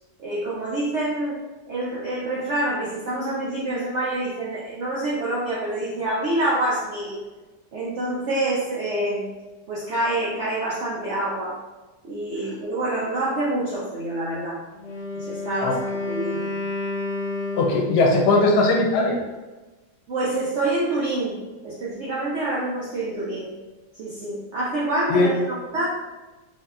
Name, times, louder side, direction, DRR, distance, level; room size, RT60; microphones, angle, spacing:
voice 1, 0.2-1.4 1.7-7.2 7.7-9.3 9.7-11.6 12.0-14.6 15.1-16.5 20.1-23.5 23.9-25.9, right 1 dB, 70° right, -7 dB, 0.6 m, -27 dB
Wind instrument woodwind instrument, 14.7-18.2, left 2 dB, 90° left, 0.5 m, -30 dB
voice 2, 17.5-19.2 25.1-25.3, left 2 dB, 75° left, -1 dB, 1.1 m, -19 dB
3.3 x 2.7 x 2.3 m, 1.2 s
omnidirectional pair, 1.9 m